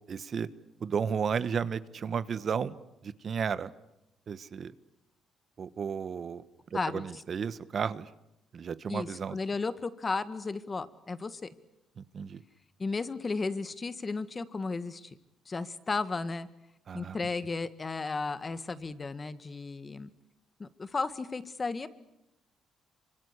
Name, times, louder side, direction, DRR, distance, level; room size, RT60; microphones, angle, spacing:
voice 1, 0.1-0.5 0.8-2.7 3.0-3.7 4.3-4.7 5.6-6.4 6.9-8.1 8.5-9.4 12.0-12.4 16.9-17.2, right 6 dB, 50° right, 15 dB, 1.2 m, -33 dB
voice 2, 6.7-7.1 8.9-11.5 12.8-15.2 15.5-16.5 16.9-20.1 20.6-21.9, left 4 dB, 30° left, 13 dB, 1.8 m, -34 dB
26.5 x 25.5 x 8.4 m, 0.87 s
cardioid pair, 90°, 0 cm